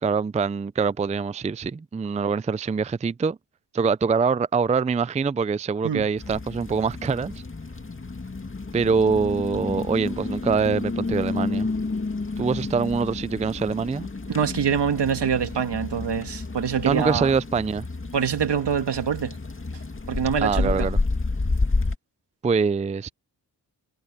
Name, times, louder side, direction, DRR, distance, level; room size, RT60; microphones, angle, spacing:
voice 1, 0.0-3.4 3.7-7.3 8.7-11.7 12.4-14.1 16.9-17.9 20.4-21.0 22.4-23.1, right 5 dB, 20° right, 0.4 m, -24 dB
sound 1, 6.2-21.9, left 3 dB, 30° left, 2.4 m, -30 dB
voice 2, 14.3-17.3 18.1-19.4 20.1-20.9, right 7 dB, 75° right, 1.9 m, -25 dB
cardioid pair, 70°, 42 cm